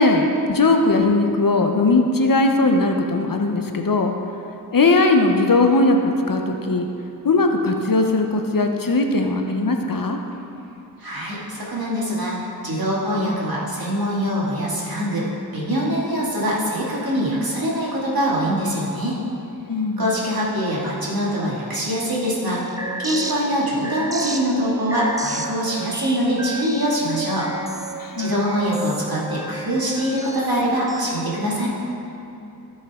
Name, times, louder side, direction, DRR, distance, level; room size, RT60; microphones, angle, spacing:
voice 1, 0.0-4.1 4.7-6.9 7.2-10.2 19.7-20.1 28.0-28.3, left 2 dB, 55° left, 4 dB, 0.8 m, -19 dB
voice 2, 11.0-15.3 15.5-19.2 20.0-27.5 28.2-31.7, equal, 65° right, -6 dB, 2.3 m, -23 dB
sound 1, 22.1-31.1, right 2 dB, 10° right, 0.6 m, -33 dB
15.0 x 5.5 x 3.7 m, 2.9 s
wide cardioid pair, 60°, 39 cm